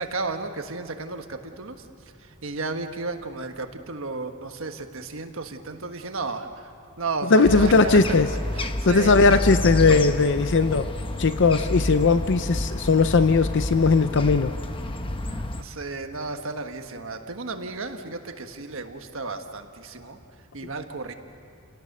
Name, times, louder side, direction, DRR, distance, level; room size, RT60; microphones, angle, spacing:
voice 1, 0.0-1.8 2.2-6.7 7.0-9.6 15.2-20.2 20.5-21.1, right 3 dB, 65° right, 6 dB, 1.5 m, -33 dB
voice 2, 7.3-8.3 8.9-10.9 11.2-14.5, left 4 dB, 55° left, 10 dB, 0.6 m, -18 dB
sound 1, 7.4-15.6, left 1 dB, 25° left, 0.9 m, -29 dB
29.5 x 18.5 x 6.7 m, 2.4 s
head